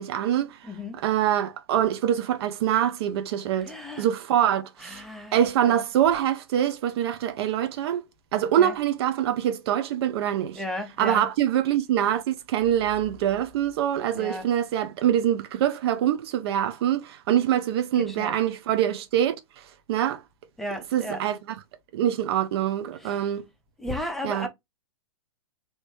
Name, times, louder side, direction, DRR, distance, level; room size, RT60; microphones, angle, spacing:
voice 1, 0.0-3.7 4.0-5.0 5.3-8.0 8.3-10.6 11.0-20.2 20.9-21.6 21.9-23.4 24.2-24.5, right 10 dB, 50° right, 0.5 m, -24 dB
voice 2, 0.6-1.0 3.6-4.1 4.8-5.8 8.6-8.8 10.5-11.3 14.1-14.5 18.0-18.4 20.6-21.2 23.0-23.3 23.8-24.5, left 1 dB, ahead, 0.8 m, -35 dB
3.0 x 2.8 x 3.1 m
hypercardioid pair, 120°, 17 cm